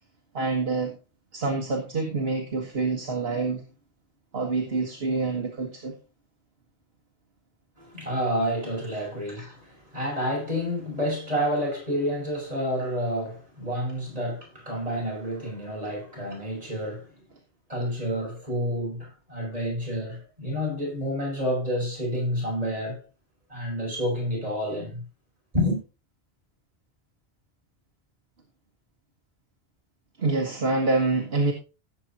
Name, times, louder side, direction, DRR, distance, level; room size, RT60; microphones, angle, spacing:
voice 1, 0.3-1.0 1.3-3.6 4.3-6.0 30.2-31.5, right 3 dB, 65° right, 1.7 m, -26 dB
voice 2, 7.8-17.1 17.7-23.0 23.5-25.0 25.5-25.8, equal, 35° right, 6.2 m, -29 dB
16.5 x 7.6 x 2.8 m
omnidirectional pair, 1.1 m